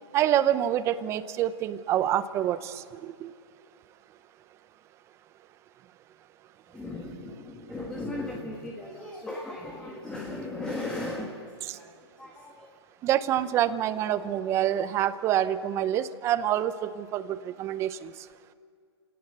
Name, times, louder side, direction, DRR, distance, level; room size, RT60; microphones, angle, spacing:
voice 1, 0.1-2.8 3.0-3.3 13.0-18.1, right 11 dB, 20° right, 14 dB, 0.7 m, -26 dB
voice 2, 6.7-12.7, left 2 dB, 5° left, -1 dB, 1.7 m, -37 dB
29.0 x 18.0 x 6.7 m, 2.2 s
hypercardioid pair, 150°, 14 cm